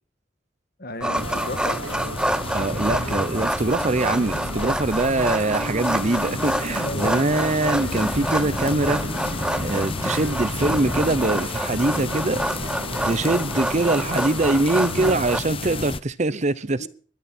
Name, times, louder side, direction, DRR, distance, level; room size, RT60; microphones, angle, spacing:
voice 1, 0.8-1.8 6.8-7.3 16.8-16.9, left 1 dB, 55° left, 2.1 m, -33 dB
sound 1, 1.0-15.4, right 1 dB, 5° right, 0.7 m, -28 dB
sound 2, 1.0-15.9, right 1 dB, 90° right, 2.7 m, -36 dB
sound 3, 1.1-16.0, left 3 dB, 30° left, 0.8 m, -32 dB
voice 2, 2.5-9.0 9.6-12.4 13.0-16.9, right 2 dB, 40° right, 0.8 m, -23 dB
21.0 x 13.0 x 4.4 m
head